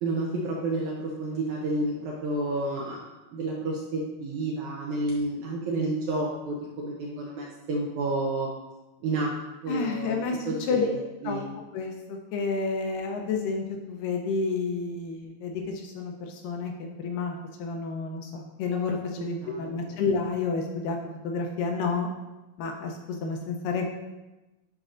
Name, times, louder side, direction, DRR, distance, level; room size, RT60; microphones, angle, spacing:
voice 1, 0.0-3.0 3.3-8.5 9.0-9.3 9.6-11.5 19.2-19.7, right 2 dB, 75° right, -2 dB, 1.8 m, -30 dB
voice 2, 9.7-10.4 10.7-10.9 11.3-11.4 11.7-21.0 21.2-22.1 22.6-23.9, left 4 dB, 80° left, 2 dB, 2.2 m, -30 dB
9.7 x 5.2 x 2.5 m, 1.1 s
omnidirectional pair, 4.2 m